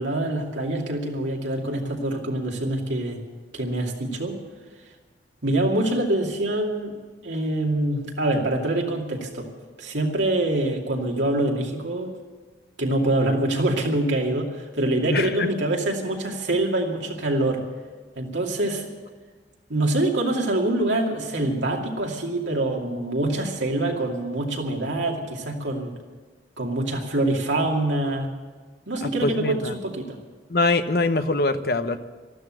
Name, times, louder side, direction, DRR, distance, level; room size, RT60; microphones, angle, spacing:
voice 1, 0.0-3.2 3.5-4.4 5.4-6.9 7.2-9.5 9.8-12.2 12.8-17.6 18.2-18.9 19.7-25.9 26.6-28.3 28.9-30.2, right 1 dB, 85° right, 0 dB, 2.6 m, -25 dB
voice 2, 15.1-15.5 29.0-29.7 30.5-32.0, left 2 dB, 55° left, 10 dB, 0.9 m, -23 dB
13.5 x 12.5 x 7.7 m, 1.4 s
head